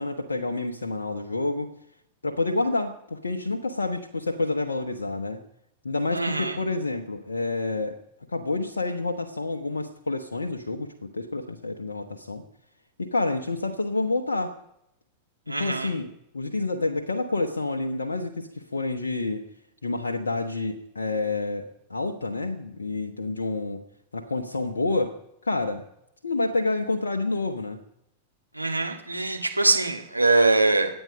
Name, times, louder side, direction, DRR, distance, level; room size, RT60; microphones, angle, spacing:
voice 1, 0.0-1.7 2.2-5.4 5.8-8.0 8.3-12.4 13.0-14.5 15.6-19.4 19.8-23.8 24.1-25.2 25.4-25.8 26.2-27.8, left 3 dB, 75° left, 3 dB, 1.1 m, -28 dB
voice 2, 6.1-6.6 15.5-15.9 28.5-30.9, right 3 dB, 85° right, 2 dB, 2.0 m, -23 dB
24.5 x 9.2 x 5.2 m, 0.78 s
figure-of-eight pair, 90°, 0 cm